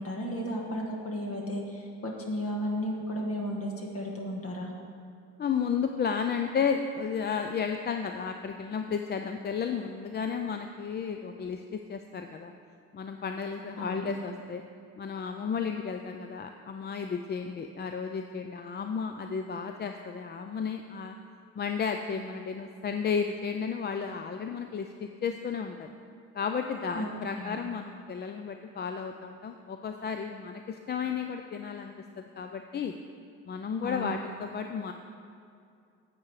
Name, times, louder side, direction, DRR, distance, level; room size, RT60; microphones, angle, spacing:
voice 1, 0.0-4.7 13.8-14.1 26.9-27.1 27.3-27.6 33.8-34.1, equal, 50° left, -1 dB, 1.4 m, -34 dB
voice 2, 5.4-12.5 12.9-14.6 15.0-21.1 21.6-25.9 26.3-32.9 33.5-34.9, left 6 dB, 35° left, 6 dB, 0.4 m, -33 dB
8.7 x 7.7 x 4.8 m, 2.4 s
cardioid pair, 90°, 30 cm